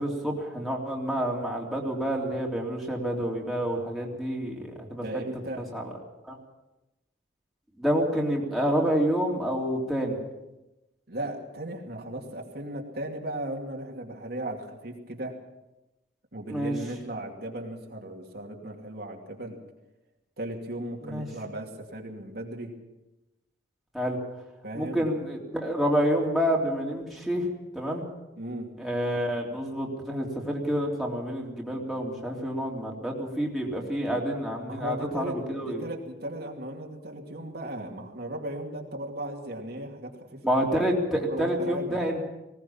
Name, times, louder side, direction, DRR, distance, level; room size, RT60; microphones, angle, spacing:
voice 1, 0.0-5.0 5.7-5.8 6.3-6.4 7.8-10.2 16.5-16.7 21.1-21.3 23.9-24.2 24.7-27.5 27.7-28.0 28.8-35.8 40.4-42.3, equal, ahead, -3 dB, 3.3 m, -28 dB
voice 2, 5.0-5.7 11.1-15.4 16.3-19.6 20.4-22.8 24.6-25.1 28.4-28.7 34.7-40.4 41.1-42.0, right 1 dB, 60° right, 1 dB, 2.6 m, -36 dB
19.5 x 18.0 x 7.2 m, 0.99 s
head